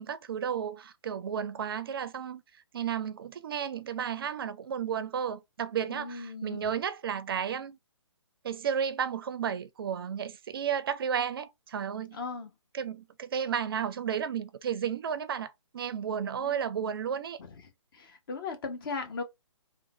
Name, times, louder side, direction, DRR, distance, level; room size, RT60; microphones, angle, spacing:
voice 1, 0.0-2.4 2.7-7.8 8.4-12.2 12.7-17.4, right 8 dB, 45° right, 0.4 m, -33 dB
voice 2, 5.9-6.7 12.1-12.5 16.4-16.6 17.4-17.6 17.9-19.2, left 4 dB, 45° left, 0.9 m, -38 dB
3.6 x 2.3 x 2.8 m
figure-of-eight pair, 140°, 16 cm